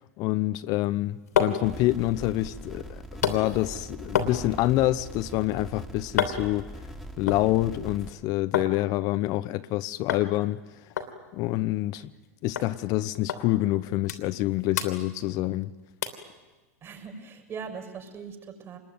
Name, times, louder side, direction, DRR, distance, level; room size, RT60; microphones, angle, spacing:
voice 1, 0.0-6.7 7.2-10.6 11.3-12.1 12.4-15.7, left 16 dB, 50° left, 0.9 m, -27 dB
sound 1, 0.8-8.7 9.0-9.7 10.1-10.3 10.6-10.7 11.0-12.3 12.6-12.7 13.3-13.4 13.8-14.5 14.7-15.6 16.0-16.3 16.8-16.9, left 8 dB, 85° left, 3.0 m, -32 dB
sound 2, 1.6-8.1, right 1 dB, 5° right, 2.7 m, -42 dB
voice 2, 16.8-18.8, right 6 dB, 35° right, 6.3 m, -40 dB
26.5 x 21.5 x 9.5 m
hypercardioid pair, 110°, 8 cm